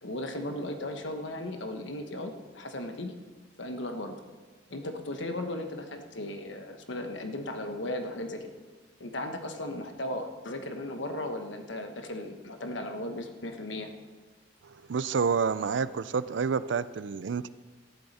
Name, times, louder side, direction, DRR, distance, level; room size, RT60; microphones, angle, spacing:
voice 1, 0.0-3.1 3.6-4.2 4.7-8.5 9.0-13.9, left 1 dB, 75° left, 6 dB, 1.2 m, -36 dB
voice 2, 14.9-17.5, right 5 dB, 70° right, 16 dB, 0.4 m, -28 dB
14.0 x 11.0 x 4.3 m, 1.3 s
head